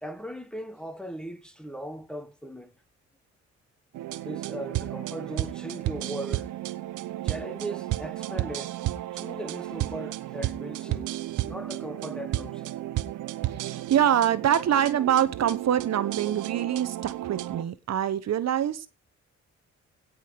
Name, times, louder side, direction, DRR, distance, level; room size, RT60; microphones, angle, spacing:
voice 1, 0.0-2.7 4.2-6.5 7.2-8.8 9.1-11.1 11.4-12.8, right 1 dB, 5° left, 1.5 m, -38 dB
sound 1, 3.9-17.6, right 14 dB, 80° right, 0.9 m, -33 dB
voice 2, 13.5-18.9, right 10 dB, 60° right, 1.2 m, -25 dB
17.0 x 5.7 x 4.6 m
cardioid pair, 90°, 30 cm